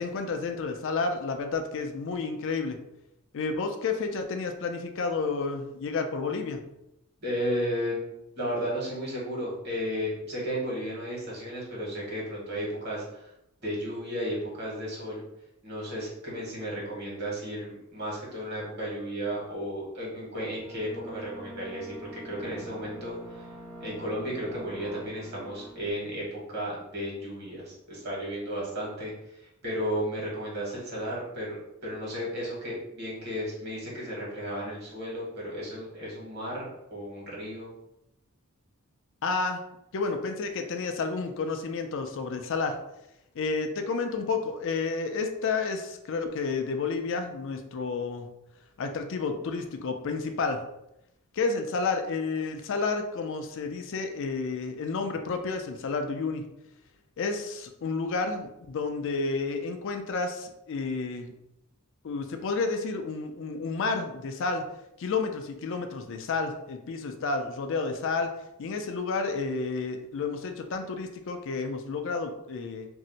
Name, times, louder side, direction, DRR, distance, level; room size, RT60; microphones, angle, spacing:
voice 1, 0.0-2.8 3.3-6.6 39.2-39.6 39.9-42.8 43.3-48.3 48.8-50.6 51.3-56.5 57.2-61.3 62.0-64.7 65.0-68.3 68.6-72.9, left 4 dB, 60° left, 6 dB, 0.4 m, -30 dB
voice 2, 7.2-8.0 8.4-13.2 13.6-15.2 15.6-23.4 23.8-29.1 29.4-31.6 31.8-37.7, equal, 50° right, -5 dB, 1.3 m, -34 dB
sound 1, 20.6-25.9, right 1 dB, 15° right, 0.7 m, -44 dB
2.6 x 2.1 x 3.9 m, 0.85 s
head